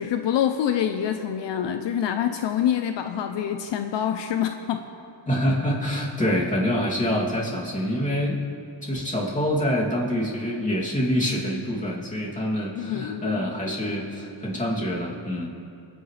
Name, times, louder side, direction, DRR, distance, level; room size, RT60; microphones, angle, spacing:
voice 1, 0.0-4.9 12.7-13.4, left 9 dB, 75° left, 7 dB, 0.7 m, -26 dB
voice 2, 5.3-8.4 8.8-15.5, equal, 15° left, -5 dB, 2.8 m, -26 dB
28.0 x 9.7 x 3.4 m, 2.5 s
cardioid pair, 120°, 44 cm